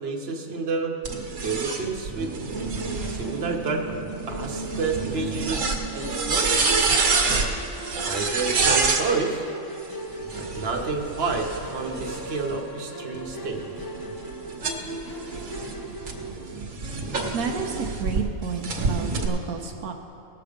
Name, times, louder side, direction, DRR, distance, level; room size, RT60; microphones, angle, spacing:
voice 1, 0.0-0.9 1.4-2.3 3.1-3.9 4.3-6.5 8.0-9.5 10.4-13.6, right 4 dB, 45° right, 1 dB, 1.3 m, -29 dB
sound 1, 1.1-9.1 10.2-12.6 13.1-18.2 18.6-19.3, right 4 dB, 65° right, 1.5 m, -27 dB
Musical instrument, 2.5-16.3, right 2 dB, 20° left, 0.7 m, -37 dB
voice 2, 17.3-19.9, right 5 dB, 80° right, 3 dB, 1.2 m, -31 dB
17.5 x 6.9 x 5.1 m, 2.5 s
omnidirectional pair, 1.5 m